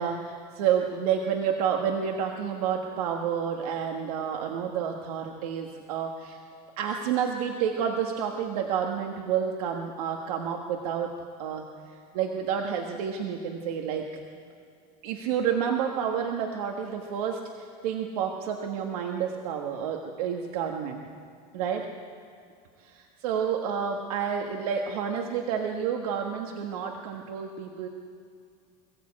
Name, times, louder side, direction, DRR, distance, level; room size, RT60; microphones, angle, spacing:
voice 1, 0.0-6.4 6.8-14.2 15.0-21.0 21.5-21.9 22.8-27.9, right 7 dB, 85° right, 3 dB, 1.6 m, -30 dB
22.0 x 15.0 x 8.6 m, 2.3 s
supercardioid pair, 155°, 19 cm